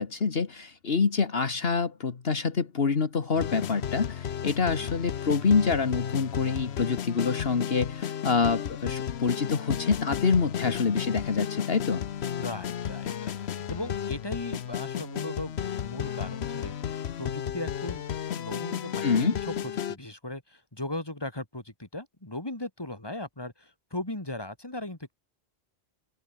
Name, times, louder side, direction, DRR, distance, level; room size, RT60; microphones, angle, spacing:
voice 1, 0.0-12.0 19.0-19.3, left 5 dB, 65° left, 1.7 m, -26 dB
sound 1, 3.3-20.0, left 9 dB, 80° left, 1.1 m, -33 dB
voice 2, 12.3-18.0 18.3-19.5 19.9-25.1, left 1 dB, 20° left, 3.1 m, -38 dB
omnidirectional pair, 1.1 m